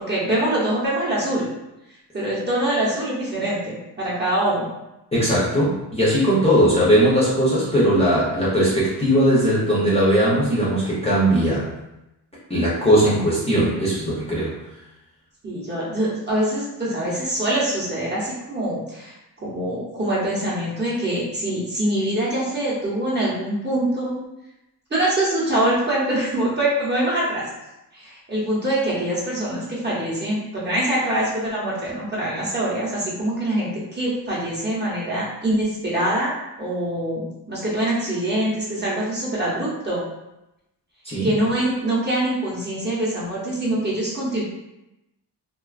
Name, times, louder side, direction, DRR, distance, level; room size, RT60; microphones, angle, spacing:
voice 1, 0.1-1.5 2.1-4.7 15.4-24.2 24.9-27.4 27.9-36.3 36.6-40.0 41.2-44.4, right 1 dB, 25° right, -6 dB, 0.8 m, -24 dB
voice 2, 5.1-11.7 12.5-14.5 41.0-41.3, equal, 15° left, -9 dB, 0.5 m, -19 dB
2.4 x 2.3 x 2.3 m, 0.92 s
cardioid pair, 125°, 41 cm